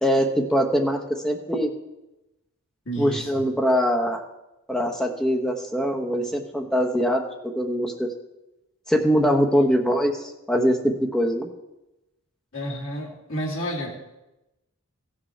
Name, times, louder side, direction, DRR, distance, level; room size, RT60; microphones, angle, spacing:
voice 1, 0.0-1.7 3.0-4.2 4.7-7.2 7.6-8.1 8.9-11.5, equal, 5° left, 3 dB, 0.9 m, -22 dB
voice 2, 2.8-3.4 12.5-14.0, right 1 dB, 65° left, -3 dB, 2.5 m, -31 dB
15.5 x 6.4 x 4.5 m, 0.97 s
head